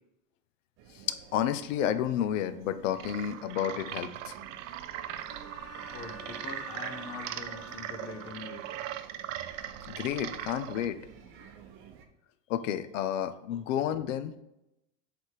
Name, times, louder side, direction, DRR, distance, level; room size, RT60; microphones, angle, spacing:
sound 1, 0.8-12.1, right 7 dB, 35° right, 0.7 m, -52 dB
voice 1, 0.9-4.4 9.9-11.0 12.5-14.3, left 10 dB, 70° left, 11 dB, 0.7 m, -31 dB
sound 2, 2.9-10.9, right 11 dB, 70° right, 0.6 m, -40 dB
Bowed string instrument, 5.3-9.0, equal, 40° left, 1.8 m, -48 dB
voice 2, 5.8-8.6 13.5-13.6, left 4 dB, 15° left, 4 dB, 0.3 m, -43 dB
7.9 x 3.5 x 4.5 m, 0.88 s
supercardioid pair, 160°, 39 cm